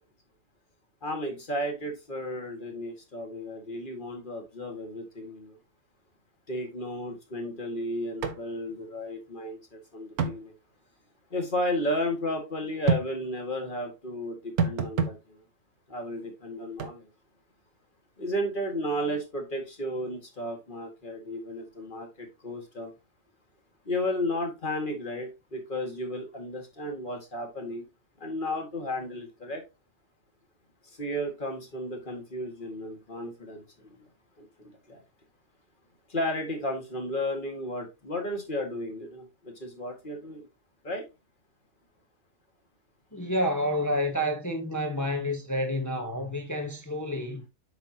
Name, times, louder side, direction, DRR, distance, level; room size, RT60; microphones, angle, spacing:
voice 1, 1.0-5.6 6.5-10.6 11.3-15.4 15.9-17.1 18.2-22.9 23.9-27.9 28.2-29.6 30.8-34.0 34.4-35.0 36.1-40.5 40.8-41.0, left 1 dB, 35° left, 2.0 m, -33 dB
sound 1, 8.2-8.4 8.7-8.8 10.2-10.4 12.9-13.1 14.6-15.2 16.8-16.9, right 5 dB, 85° right, 1.4 m, -26 dB
voice 2, 43.1-47.4, equal, 15° left, 1.0 m, -29 dB
8.1 x 5.6 x 2.8 m
omnidirectional pair, 1.5 m